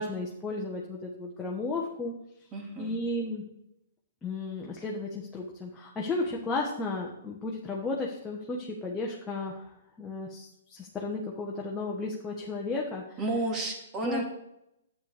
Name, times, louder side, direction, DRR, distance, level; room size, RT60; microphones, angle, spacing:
voice 1, 0.0-2.1 2.8-3.4 4.2-13.2 14.0-14.2, left 3 dB, 15° left, -3 dB, 1.2 m, -34 dB
voice 2, 2.5-3.0 13.2-14.2, right 2 dB, 25° right, 3 dB, 2.1 m, -31 dB
10.0 x 8.2 x 3.4 m, 0.82 s
hypercardioid pair, 125°, 0 cm